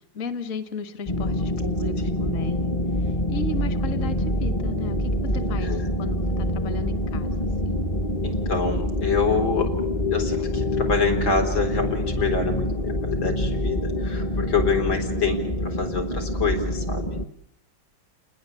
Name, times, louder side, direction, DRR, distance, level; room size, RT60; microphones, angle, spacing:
voice 1, 0.1-7.7, left 2 dB, 45° left, 10 dB, 1.7 m, -35 dB
sound 1, 1.1-17.2, left 1 dB, 25° left, 0.7 m, -26 dB
voice 2, 5.6-5.9 8.2-9.7 10.1-17.2, left 4 dB, 90° left, 3 dB, 5.1 m, -26 dB
30.0 x 20.0 x 8.2 m, 0.68 s
omnidirectional pair, 2.1 m